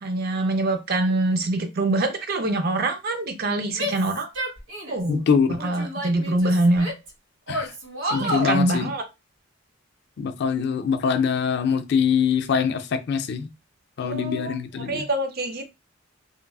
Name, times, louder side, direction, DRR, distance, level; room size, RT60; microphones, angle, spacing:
voice 1, 0.0-4.3 4.9-6.9 8.0-9.0 14.0-14.5 14.9-15.6, right 2 dB, 50° right, 0.5 m, -24 dB
Female speech woman speaking / Yell, 3.8-5.1 5.6-7.1 7.5-8.5, equal, 75° right, 1.6 m, -30 dB
voice 2, 5.1-5.6 7.5-7.7 8.1-8.9 10.2-13.5 14.0-15.0, left 6 dB, 55° left, 0.4 m, -23 dB
3.0 x 2.3 x 2.3 m
head